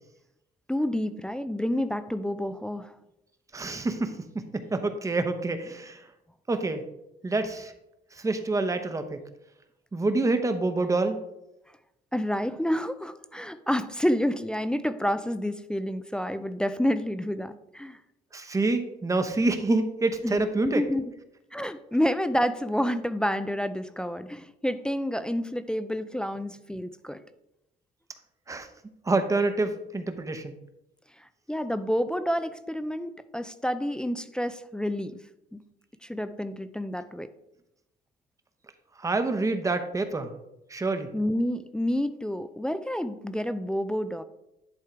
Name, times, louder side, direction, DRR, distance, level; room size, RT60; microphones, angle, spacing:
voice 1, 0.7-2.9 12.1-18.0 20.2-21.1 21.5-27.2 31.2-35.2 35.5-35.6 36.0-37.3 41.1-44.2, equal, 5° left, 10 dB, 0.4 m, -29 dB
voice 2, 3.5-4.2 4.5-6.0 6.5-6.8 7.2-7.7 8.1-9.2 9.9-11.2 18.3-20.8 28.5-28.7 29.0-30.5 39.0-40.3 40.7-41.1, right 2 dB, 20° right, 8 dB, 0.8 m, -27 dB
10.5 x 3.7 x 4.6 m, 0.88 s
cardioid pair, 110°, 17 cm